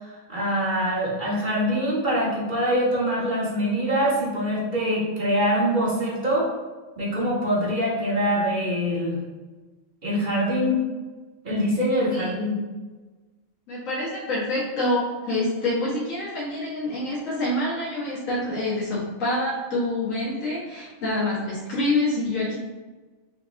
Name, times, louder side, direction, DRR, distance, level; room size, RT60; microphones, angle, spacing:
voice 1, 0.0-6.5 7.0-9.2 10.0-10.8 11.4-12.6, equal, 40° right, -6 dB, 1.4 m, -24 dB
voice 2, 13.7-22.6, left 1 dB, 85° left, -7 dB, 1.6 m, -26 dB
5.5 x 3.0 x 3.3 m, 1.3 s
omnidirectional pair, 1.3 m